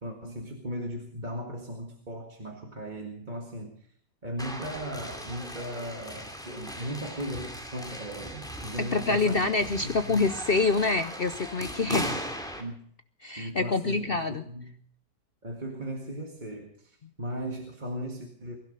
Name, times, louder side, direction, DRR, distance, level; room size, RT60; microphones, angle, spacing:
voice 1, 0.0-3.9 4.2-10.3 11.8-12.3 12.5-12.8 13.4-14.8 15.4-18.6, right 1 dB, 25° right, 1 dB, 2.0 m, -37 dB
sound 1, 4.4-12.6, equal, ahead, 2.4 m, -38 dB
voice 2, 8.8-12.1 13.2-14.4, left 3 dB, 55° left, 10 dB, 0.6 m, -26 dB
22.5 x 12.0 x 5.3 m, 0.63 s
omnidirectional pair, 1.9 m